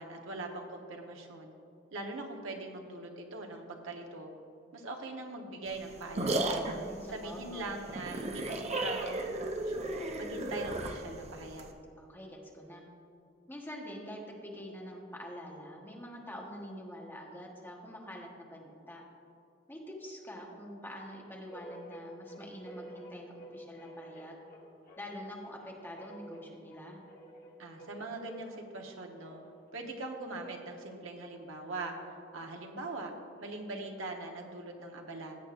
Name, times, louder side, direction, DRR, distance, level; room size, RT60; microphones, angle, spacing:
voice 1, 0.0-1.5 1.9-4.3 4.7-6.6 7.1-11.7 27.6-29.4 29.7-31.9 32.3-33.1 33.4-35.4, right 2 dB, 80° right, 2 dB, 1.2 m, -41 dB
sound 1, 5.7-11.7, right 2 dB, 35° right, 0.7 m, -35 dB
voice 2, 6.7-7.8 12.0-12.8 13.5-19.0 19.7-24.4 25.0-27.0, equal, 10° left, -1 dB, 1.3 m, -45 dB
sound 2, 21.5-29.7, right 1 dB, 45° left, 1.2 m, -51 dB
16.5 x 7.8 x 2.6 m, 2.7 s
head